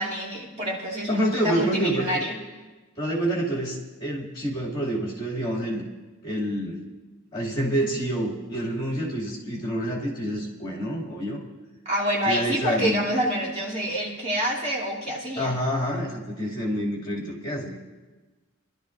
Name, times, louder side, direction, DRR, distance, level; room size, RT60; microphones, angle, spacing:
voice 1, 0.0-2.4 11.8-15.5, equal, 30° right, -5 dB, 2.7 m, -27 dB
voice 2, 1.1-2.2 3.0-5.9 6.2-6.8 7.3-11.4 12.2-13.1 15.4-17.7, right 1 dB, 25° left, -5 dB, 2.4 m, -27 dB
25.5 x 12.0 x 2.6 m, 1.2 s
head